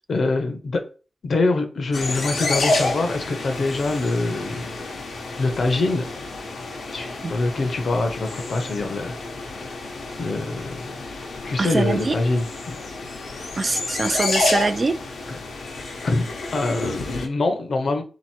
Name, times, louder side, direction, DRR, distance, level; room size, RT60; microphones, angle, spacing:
voice 1, 0.1-0.8 1.2-5.0 5.4-6.1 6.9-9.1 9.4-9.8 10.2-11.0 11.4-12.8 15.3-15.4 16.0-18.0, left 2 dB, 60° left, 0.9 m, -24 dB
sound 1, 1.9-17.3, left 3 dB, 85° left, 1.1 m, -29 dB
voice 2, 6.9-7.3 11.6-12.2 13.6-15.0, right 3 dB, 35° right, 0.3 m, -24 dB
4.1 x 3.0 x 4.4 m
wide cardioid pair, 150°, 0 cm